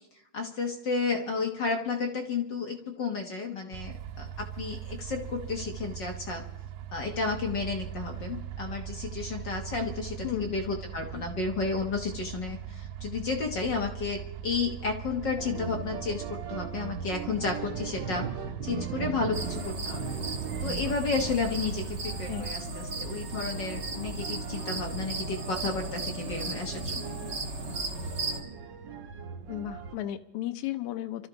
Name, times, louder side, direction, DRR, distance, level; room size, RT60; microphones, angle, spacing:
voice 1, 0.3-6.4 6.9-18.3 18.6-20.0 20.6-27.1, left 4 dB, 50° left, 2 dB, 1.4 m, -32 dB
sound 1, 3.7-22.6, right 10 dB, 85° right, 2.1 m, -40 dB
voice 2, 10.2-10.6 22.3-22.5 29.5-31.3, left 12 dB, 80° left, 8 dB, 2.1 m, -34 dB
sound 2, 15.4-30.0, right 6 dB, 60° right, 1.1 m, -40 dB
sound 3, 19.3-28.4, right 2 dB, 30° right, 1.5 m, -36 dB
27.0 x 13.0 x 3.9 m, 0.87 s
omnidirectional pair, 3.4 m